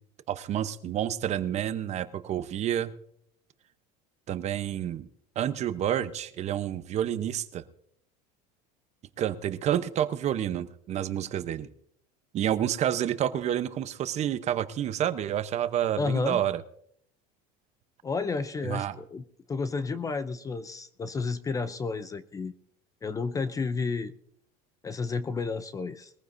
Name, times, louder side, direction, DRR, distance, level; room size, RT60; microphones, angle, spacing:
voice 1, 0.3-2.9 4.3-5.1 5.4-7.6 9.2-11.7 12.3-16.6 18.6-19.0, right 10 dB, 35° right, 12 dB, 0.8 m, -29 dB
voice 2, 16.0-16.4 18.0-19.2 19.5-22.5 23.0-24.1 24.8-26.1, left 4 dB, 15° left, 13 dB, 0.5 m, -31 dB
21.5 x 15.0 x 2.6 m, 0.69 s
supercardioid pair, 135°, 19 cm